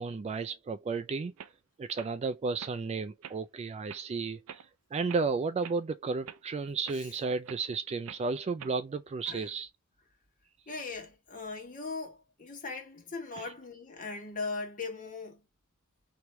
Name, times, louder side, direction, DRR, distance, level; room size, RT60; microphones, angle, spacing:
voice 1, 0.0-1.3 1.8-4.6 4.9-9.7 13.4-13.5, right 4 dB, 30° right, 0.3 m, -33 dB
sound 1, 0.9-1.0 1.4-1.5 1.9-2.1 2.6-2.8 3.2-3.4 3.9-4.0 4.5-4.7 5.1-5.3 5.6-5.8 6.3-6.4 6.8-7.0 7.4-7.6 8.0-8.2 8.6-8.8, right 8 dB, 90° right, 0.5 m, -46 dB
voice 2, 10.7-15.4, left 4 dB, 40° left, 1.6 m, -39 dB
3.5 x 3.0 x 4.2 m
head